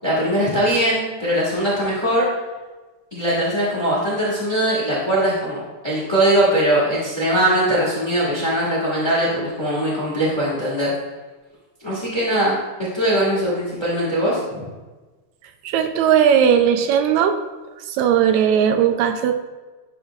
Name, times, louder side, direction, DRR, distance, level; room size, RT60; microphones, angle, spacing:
voice 1, 0.0-2.3 3.1-10.9 11.8-12.6 12.9-14.7, right 1 dB, 15° left, -7 dB, 0.8 m, -21 dB
voice 2, 15.7-17.4 18.0-19.3, right 8 dB, 80° right, 8 dB, 1.7 m, -17 dB
10.0 x 5.6 x 2.4 m, 1.2 s
omnidirectional pair, 3.6 m